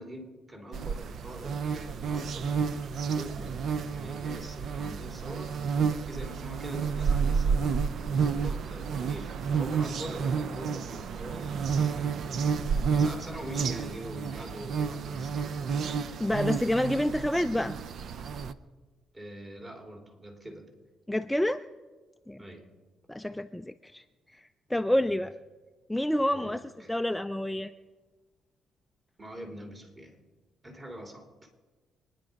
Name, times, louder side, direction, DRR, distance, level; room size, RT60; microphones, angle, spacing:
voice 1, 0.0-3.6 3.9-15.7 19.1-20.7 22.4-22.7 24.9-25.1 26.3-26.9 29.2-30.2 30.6-31.3, equal, 30° right, 3 dB, 3.6 m, -44 dB
sound 1, 0.7-18.5, right 6 dB, 65° right, 0.7 m, -30 dB
voice 2, 16.2-17.8 21.1-21.6 22.3-22.4 23.1-24.0 24.3-24.4 24.7-25.3 25.9-26.6 26.9-27.7, left 1 dB, 5° left, 9 dB, 0.4 m, -28 dB
25.5 x 10.0 x 5.3 m, 1.3 s
cardioid pair, 90°, 0 cm